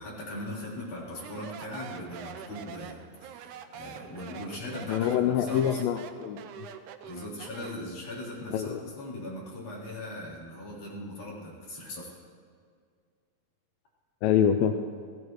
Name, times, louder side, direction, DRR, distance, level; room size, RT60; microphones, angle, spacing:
voice 1, 0.0-5.8 7.0-12.1, left 1 dB, 60° left, -6 dB, 5.1 m, -40 dB
Speech, 1.1-7.9, right 8 dB, 75° right, 2.0 m, -44 dB
voice 2, 4.9-6.7 8.5-8.8 14.2-14.7, left 9 dB, 90° left, 7 dB, 2.3 m, -25 dB
20.0 x 16.0 x 3.1 m, 2.1 s
omnidirectional pair, 4.0 m